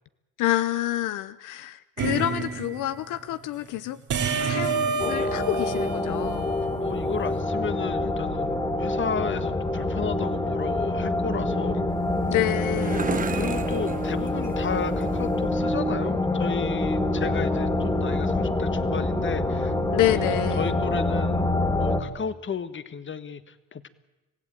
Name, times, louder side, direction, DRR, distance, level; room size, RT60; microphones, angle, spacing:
voice 1, 0.4-4.0 4.4-6.5 12.3-13.2 19.9-20.6, left 15 dB, 90° left, 13 dB, 0.8 m, -28 dB
sound 1, 2.0-2.9 4.1-6.9, right 5 dB, 75° right, 3.2 m, -28 dB
sound 2, 5.0-22.0, left 2 dB, 15° left, 2.7 m, -26 dB
voice 2, 6.8-11.8 13.3-19.7 20.1-21.5 21.8-23.9, left 6 dB, 40° left, 12 dB, 1.5 m, -33 dB
sound 3, 11.9-15.5, right 5 dB, 25° right, 1.2 m, -35 dB
26.0 x 16.5 x 9.0 m, 1.1 s
cardioid pair, 90°, 30 cm